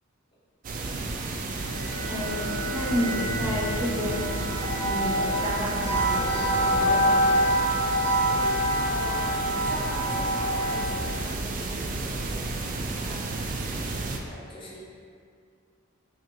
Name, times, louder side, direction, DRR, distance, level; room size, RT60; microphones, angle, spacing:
sound 1, 0.6-14.2, right 2 dB, 40° right, 0.3 m, -32 dB
sound 2, 1.5-11.0, equal, 60° right, 1.3 m, -27 dB
voice 1, 2.1-4.4 4.8-7.2, equal, 15° right, -9 dB, 0.8 m, -31 dB
voice 2, 8.7-13.6 14.2-14.8, equal, 25° left, -6 dB, 0.8 m, -42 dB
5.9 x 2.8 x 2.3 m, 2.2 s
head